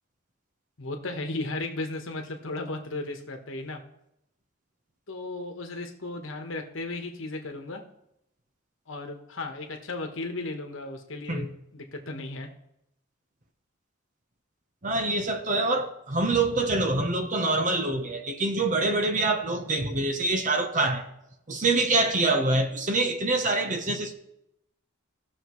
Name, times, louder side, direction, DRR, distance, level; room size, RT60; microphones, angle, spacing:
voice 1, 0.8-3.8 5.1-7.8 8.9-12.5, left 2 dB, 75° left, 1.3 m, -35 dB
voice 2, 14.8-21.0 21.5-24.1, right 2 dB, 40° right, 0.9 m, -25 dB
17.0 x 6.4 x 3.2 m
head